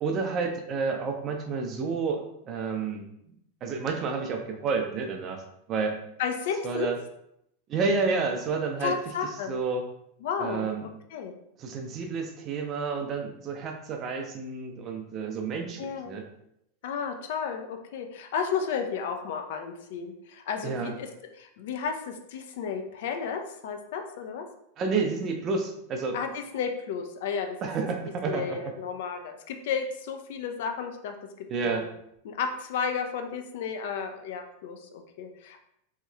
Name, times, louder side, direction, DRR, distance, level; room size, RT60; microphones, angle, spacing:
voice 1, 0.0-3.1 3.6-5.4 5.7-5.9 6.6-7.0 7.7-8.9 9.5-9.9 10.4-10.9 11.6-16.3 20.6-21.0 24.8-26.2 27.6-28.7 31.5-31.9, right 4 dB, 30° right, 4 dB, 0.5 m, -30 dB
voice 2, 6.2-6.9 8.8-9.5 10.2-10.7 11.1-11.3 15.8-16.1 16.8-21.1 21.4-24.5 26.1-27.6 28.3-31.9 32.2-35.6, left 6 dB, 55° left, 5 dB, 0.3 m, -33 dB
3.0 x 2.9 x 2.3 m, 0.76 s
figure-of-eight pair, 90°, 0 cm